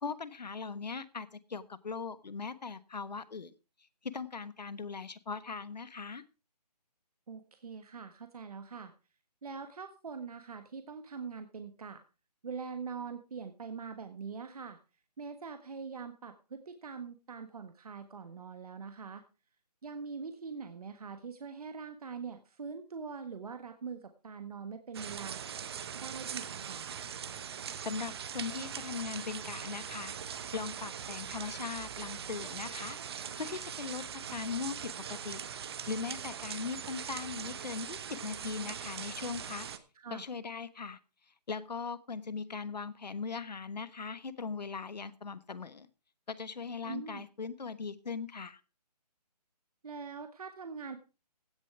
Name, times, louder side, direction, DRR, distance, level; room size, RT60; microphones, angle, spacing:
voice 1, 0.0-3.5 4.0-6.2 27.8-30.1 30.5-33.0 33.4-35.4 35.9-39.7 40.1-41.0 41.5-45.9 46.3-48.6, left 5 dB, 75° left, 16 dB, 1.3 m, -39 dB
voice 2, 7.3-8.9 9.4-12.0 12.4-14.8 15.2-19.2 19.8-25.6 25.9-26.9 39.9-40.2 46.8-47.2 49.8-51.0, right 5 dB, 60° right, 8 dB, 1.5 m, -43 dB
sound 1, 24.9-39.8, right 8 dB, 35° right, 1.0 m, -41 dB
16.0 x 7.2 x 4.7 m, 0.32 s
figure-of-eight pair, 155°, 21 cm